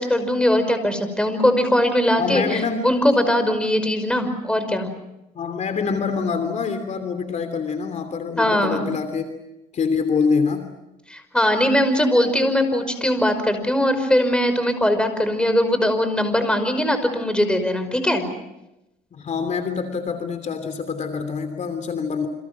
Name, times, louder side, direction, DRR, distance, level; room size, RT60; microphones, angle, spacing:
voice 1, 0.0-4.9 8.4-8.9 11.1-18.2, left 1 dB, 5° left, 8 dB, 5.4 m, -20 dB
voice 2, 2.2-3.0 5.3-9.3 9.7-10.7 19.1-22.3, left 5 dB, 45° left, 8 dB, 3.1 m, -25 dB
29.5 x 27.0 x 6.2 m, 0.92 s
cardioid pair, 110°, 17 cm